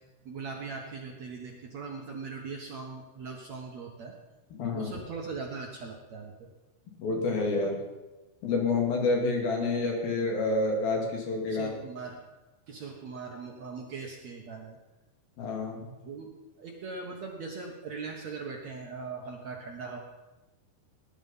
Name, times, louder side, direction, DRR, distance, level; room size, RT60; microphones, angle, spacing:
voice 1, 0.3-4.1 4.7-6.5 11.5-12.2 12.7-14.8 16.0-16.3 16.6-20.0, right 4 dB, 60° right, 1 dB, 2.1 m, -40 dB
voice 2, 4.5-5.0 7.0-7.8 8.4-11.7 15.4-15.9, left 3 dB, 65° left, 1 dB, 4.3 m, -28 dB
19.0 x 11.0 x 5.7 m, 1.1 s
omnidirectional pair, 4.6 m